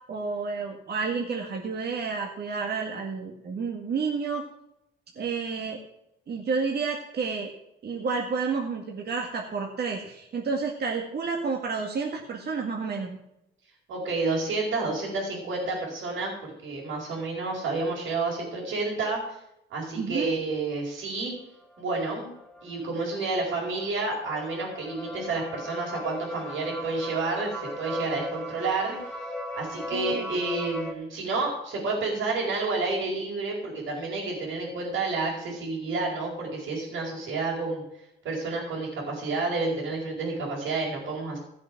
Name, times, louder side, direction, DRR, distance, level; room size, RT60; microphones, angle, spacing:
voice 1, 0.1-4.5 5.2-5.8 6.3-7.5 7.8-13.2 20.0-20.3 29.9-30.3, right 5 dB, 55° right, 1 dB, 2.0 m, -30 dB
voice 2, 13.9-19.4 19.7-21.4 21.8-22.3 22.6-29.0 29.5-37.8 38.2-41.4, right 3 dB, 80° right, -5 dB, 4.5 m, -30 dB
sound 1, 21.6-30.9, equal, 5° left, 2.4 m, -38 dB
16.5 x 7.6 x 6.1 m, 0.83 s
cardioid pair, 90°, 20 cm